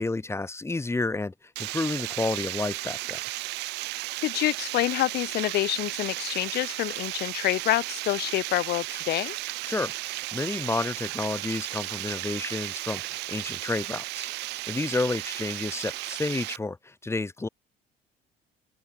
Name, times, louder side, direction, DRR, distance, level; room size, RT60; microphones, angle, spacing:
voice 1, 0.0-1.3 1.6-3.2 9.6-9.9 10.3-14.3 14.7-17.5, left 3 dB, 15° left, 2.8 m, -30 dB
Water, 1.6-16.6, right 20 dB, 90° right, 5.4 m, -34 dB
voice 2, 4.2-9.4, left 15 dB, 75° left, 1.4 m, -27 dB
open air
cardioid pair, 110°, 17 cm